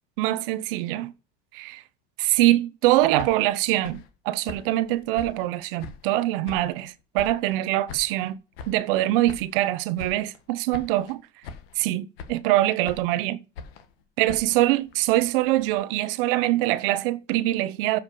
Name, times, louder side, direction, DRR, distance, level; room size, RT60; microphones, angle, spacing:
voice 1, 0.2-1.1 1.5-1.8 2.2-8.4 8.7-11.2 11.8-13.4 14.2-18.0, right 16 dB, 65° right, 0.8 m, -24 dB
sound 1, 2.9-6.2 6.4-7.6 7.9-9.7 10.0-10.5 10.7-11.2 11.4-11.9 12.2-13.2 13.6-15.7, left 5 dB, 80° left, 1.7 m, -43 dB
7.4 x 5.7 x 6.6 m
supercardioid pair, 140°, 30 cm